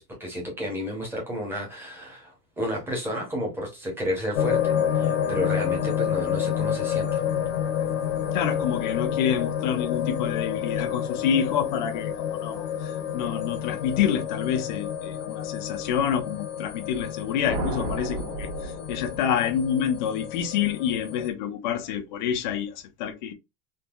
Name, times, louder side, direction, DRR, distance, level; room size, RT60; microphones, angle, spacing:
voice 1, 0.0-7.2, equal, 5° right, 0.7 m, -32 dB
sound 1, 4.3-21.3, left 9 dB, 50° left, 0.8 m, -29 dB
voice 2, 8.3-23.3, left 8 dB, 35° left, 0.4 m, -28 dB
sound 2, 17.4-19.7, right 3 dB, 45° right, 1.3 m, -33 dB
3.6 x 2.6 x 2.3 m
supercardioid pair, 170°, 47 cm